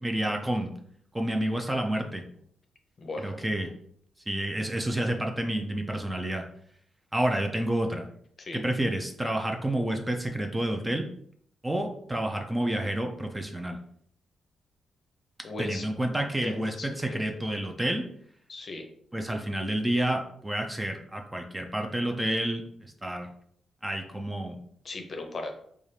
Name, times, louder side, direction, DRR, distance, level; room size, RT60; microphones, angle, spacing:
voice 1, 0.0-0.7 1.1-2.2 3.2-3.7 4.3-6.4 7.1-8.1 8.5-11.1 11.6-13.8 15.6-18.0 19.1-23.3 23.8-24.6, right 1 dB, 10° right, 3 dB, 0.4 m, -29 dB
voice 2, 3.0-3.3 8.4-8.6 15.4-15.8 16.4-17.2 18.5-18.8 24.8-25.6, left 2 dB, 40° left, 4 dB, 0.6 m, -37 dB
4.0 x 2.4 x 3.2 m, 0.66 s
cardioid pair, 120°, 0 cm